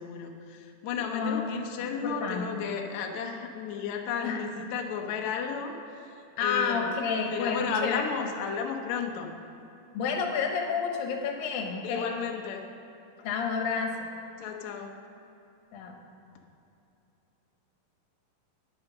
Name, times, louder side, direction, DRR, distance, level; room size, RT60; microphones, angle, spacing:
voice 1, 0.0-7.0 7.3-9.3 11.8-12.7 13.2-13.3 14.4-15.0, left 6 dB, 70° left, 3 dB, 1.9 m, -34 dB
voice 2, 1.1-1.5 2.0-2.6 4.2-4.4 6.4-8.0 9.9-12.1 13.2-14.1 15.7-15.9, left 5 dB, 85° left, 2 dB, 3.0 m, -30 dB
10.0 x 9.8 x 6.5 m, 2.8 s
omnidirectional pair, 4.0 m